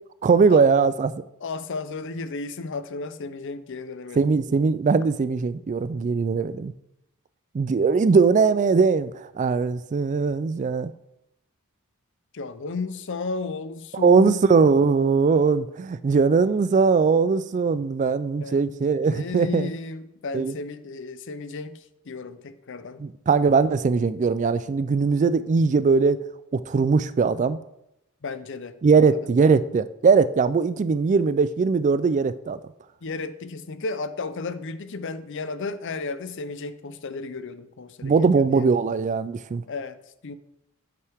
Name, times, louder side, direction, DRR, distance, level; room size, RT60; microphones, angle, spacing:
voice 1, 0.2-1.1 4.2-6.7 7.5-10.9 14.0-19.7 20.3-20.5 23.0-26.2 26.5-27.6 28.8-32.6 38.0-39.6, right 5 dB, 35° right, 0.3 m, -20 dB
voice 2, 1.4-4.4 12.3-14.4 18.4-23.0 28.2-29.2 33.0-38.7 39.7-40.3, left 4 dB, 60° left, 0.6 m, -34 dB
9.3 x 8.5 x 3.5 m
head